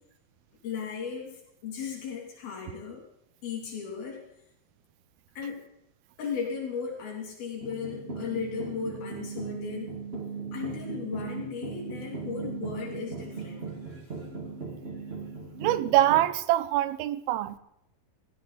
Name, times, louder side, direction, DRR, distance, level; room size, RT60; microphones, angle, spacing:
voice 1, 0.6-3.0 3.4-4.2 5.4-5.6 6.2-9.9 10.5-13.7, left 6 dB, 80° left, 4.6 m, -36 dB
sound 1, 7.6-16.3, right 4 dB, 30° right, 1.0 m, -38 dB
voice 2, 15.6-17.6, right 14 dB, 90° right, 2.6 m, -24 dB
18.0 x 16.0 x 4.0 m
omnidirectional pair, 4.2 m